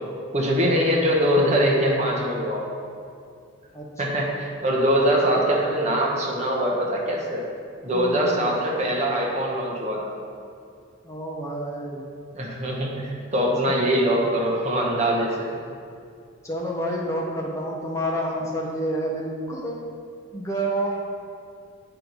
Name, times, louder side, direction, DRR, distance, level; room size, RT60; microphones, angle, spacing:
voice 1, 0.3-2.7 4.0-7.4 7.8-10.1 12.3-15.5, equal, 35° right, -2 dB, 0.9 m, -23 dB
voice 2, 7.9-8.4 11.0-12.1 13.7-13.8 16.4-19.8 20.3-21.0, right 1 dB, 15° left, -3 dB, 1.0 m, -29 dB
8.3 x 4.4 x 4.0 m, 2.3 s
head